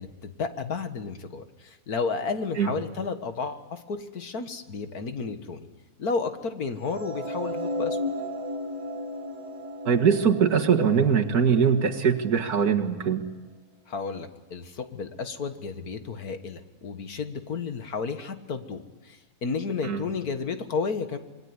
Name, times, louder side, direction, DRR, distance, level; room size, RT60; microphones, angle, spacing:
voice 1, 0.0-5.7 6.0-8.0 13.9-21.2, left 4 dB, 75° left, 8 dB, 2.1 m, -32 dB
sound 1, 6.9-13.1, left 1 dB, 20° right, 2.8 m, -35 dB
voice 2, 9.9-13.2 19.8-20.0, right 7 dB, 80° right, 2 dB, 2.3 m, -22 dB
26.5 x 22.0 x 9.8 m, 1.1 s
omnidirectional pair, 1.6 m